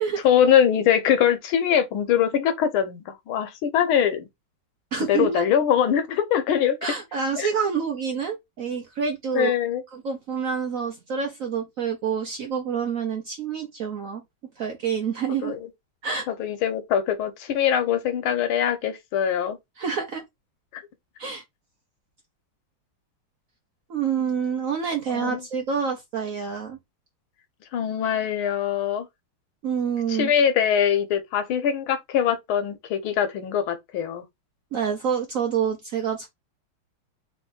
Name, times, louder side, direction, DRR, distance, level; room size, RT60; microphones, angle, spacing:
voice 1, 0.2-4.3 5.0-6.8 7.4-7.5 9.3-9.8 15.4-15.6 16.3-19.6 20.7-20.8 25.1-25.4 27.7-29.1 30.1-34.2, left 9 dB, 85° left, 1.7 m, -22 dB
voice 2, 4.9-5.5 6.8-9.5 9.9-14.2 14.6-15.5 16.0-16.3 19.8-20.2 21.2-21.4 23.9-26.8 29.6-30.3 34.7-36.3, right 6 dB, 70° right, 0.8 m, -27 dB
3.6 x 3.0 x 3.8 m
omnidirectional pair, 2.2 m